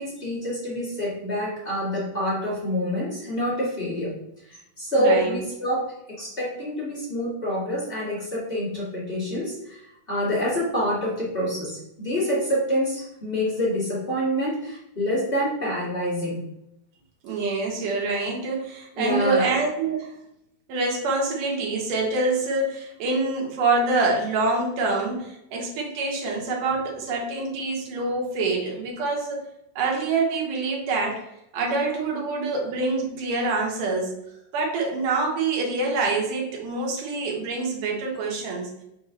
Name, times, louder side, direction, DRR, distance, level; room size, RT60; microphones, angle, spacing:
voice 1, 0.0-4.1 4.4-16.4 19.0-19.5, equal, 20° left, -9 dB, 2.0 m, -27 dB
voice 2, 5.0-5.3 17.2-20.1 20.7-29.4 29.8-31.2 31.5-34.1 34.5-38.7, right 3 dB, 75° right, -1 dB, 2.9 m, -26 dB
6.4 x 4.8 x 3.9 m, 0.82 s
omnidirectional pair, 3.8 m